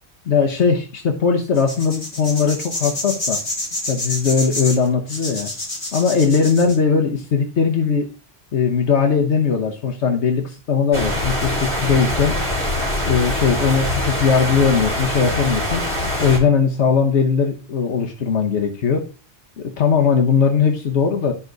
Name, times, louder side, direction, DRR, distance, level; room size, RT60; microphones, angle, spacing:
voice 1, 0.3-3.4 3.8-5.5 5.9-8.1 8.5-12.3 13.0-15.8 16.2-19.1 19.6-21.3, left 6 dB, 75° left, 3 dB, 1.3 m, -19 dB
sound 1, 1.5-6.8, left 1 dB, 45° left, 2.3 m, -28 dB
sound 2, 10.9-16.4, left 1 dB, 10° left, 3.3 m, -23 dB
12.5 x 4.8 x 3.9 m, 0.35 s
omnidirectional pair, 1.2 m